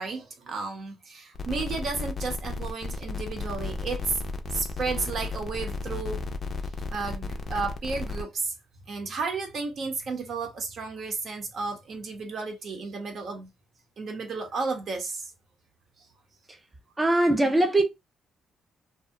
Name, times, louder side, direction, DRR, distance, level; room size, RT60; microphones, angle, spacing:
voice 1, 0.0-4.2 4.5-6.2 6.9-8.5 8.9-13.5 14.0-15.3, right 4 dB, 60° right, 0.7 m, -33 dB
sound 1, 1.3-8.2, left 3 dB, 40° left, 0.4 m, -34 dB
voice 2, 17.0-17.8, right 1 dB, 15° right, 0.4 m, -21 dB
2.3 x 2.1 x 2.6 m
cardioid pair, 90°, 0 cm